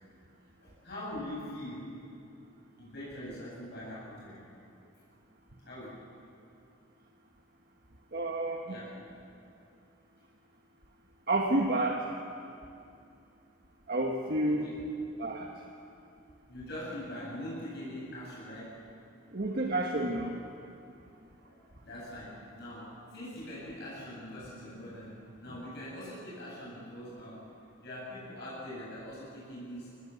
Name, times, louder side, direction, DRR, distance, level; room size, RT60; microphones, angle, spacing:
voice 1, 0.6-1.9 2.8-4.5 5.6-5.9 8.7-9.0 14.5-14.8 16.5-18.8 21.4-27.5 27.8-30.0, left 1 dB, 60° left, -7 dB, 7.4 m, -43 dB
voice 2, 8.1-8.8 11.3-12.0 13.9-14.7 15.2-15.5 19.3-20.4, right 1 dB, 55° right, 1 dB, 1.4 m, -30 dB
25.5 x 20.0 x 7.1 m, 2.6 s
head